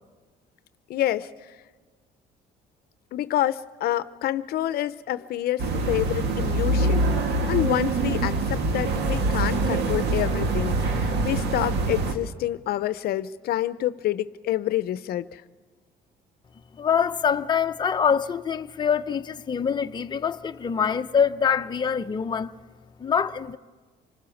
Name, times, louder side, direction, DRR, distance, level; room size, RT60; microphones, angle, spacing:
voice 1, 0.9-1.6 3.1-7.1 7.5-15.4, left 13 dB, 65° left, 0.7 m, -28 dB
sound 1, 5.6-12.2, right 2 dB, 80° right, 2.1 m, -24 dB
voice 2, 16.7-22.5 23.0-23.6, left 7 dB, 25° left, 0.7 m, -24 dB
26.5 x 20.0 x 7.2 m
cardioid pair, 110°, 17 cm